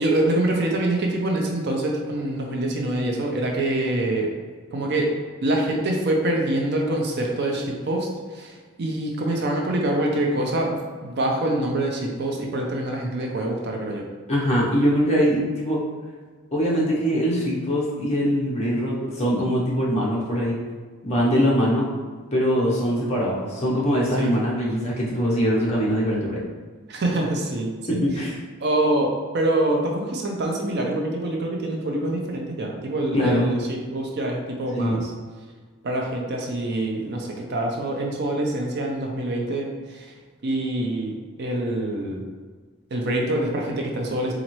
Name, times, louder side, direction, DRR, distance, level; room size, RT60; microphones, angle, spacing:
voice 1, 0.0-4.3 4.7-5.1 5.4-14.1 24.2-24.3 26.9-28.0 28.6-35.1 35.8-40.1 40.4-42.2 42.9-44.3, right 1 dB, 50° right, 0 dB, 0.5 m, -25 dB
voice 2, 14.3-15.8 16.5-20.6 21.0-21.9 22.3-26.4 27.9-28.4 33.1-33.5 34.7-35.0, equal, 30° left, -5 dB, 0.8 m, -22 dB
4.0 x 2.5 x 3.0 m, 1.5 s
head